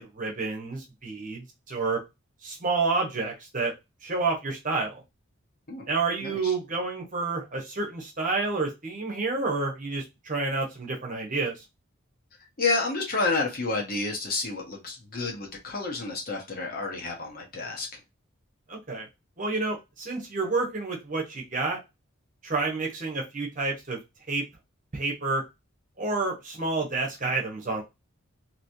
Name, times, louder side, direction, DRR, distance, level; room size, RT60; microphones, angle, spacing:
voice 1, 0.0-2.0 2.4-3.7 4.0-5.0 5.9-11.6 18.7-19.1 19.4-21.8 22.4-24.0 24.3-24.4 24.9-25.4 26.0-27.8, right 3 dB, 40° right, 0 dB, 1.0 m, -29 dB
voice 2, 6.2-6.5 12.6-18.0, left 3 dB, 45° left, 0 dB, 1.1 m, -30 dB
3.1 x 3.0 x 2.7 m, 0.23 s
head